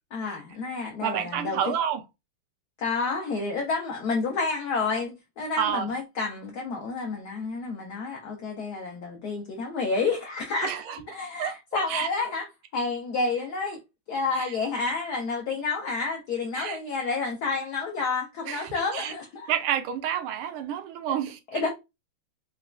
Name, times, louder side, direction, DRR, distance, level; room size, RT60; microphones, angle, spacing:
voice 1, 0.1-1.6 2.8-12.5 12.7-13.8 14.1-19.5 21.1-21.2 21.5-21.7, left 4 dB, 80° left, 0.9 m, -30 dB
voice 2, 1.0-2.0 5.6-5.9 10.6-11.0 11.4-11.5 11.9-12.1 14.4-14.5 16.5-16.8 18.5-19.1 19.5-21.6, right 9 dB, 80° right, 1.5 m, -29 dB
4.0 x 2.2 x 2.4 m
omnidirectional pair, 2.4 m